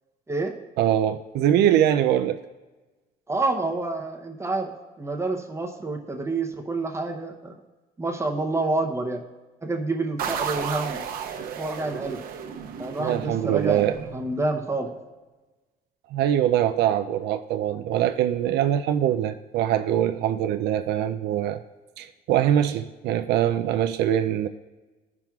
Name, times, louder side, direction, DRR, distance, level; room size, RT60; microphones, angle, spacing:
voice 1, 0.8-2.4 13.0-14.0 16.1-21.6 22.0-24.5, right 11 dB, 80° right, 7 dB, 0.4 m, -23 dB
voice 2, 3.3-7.5 8.0-9.2 9.6-11.0 11.6-12.2 12.8-13.8 14.1-14.9, right 2 dB, 15° right, 2 dB, 0.7 m, -28 dB
sound 1, 10.2-14.7, right 7 dB, 60° right, 0.8 m, -33 dB
13.5 x 5.9 x 2.3 m, 1.2 s
cardioid pair, 110°, 17 cm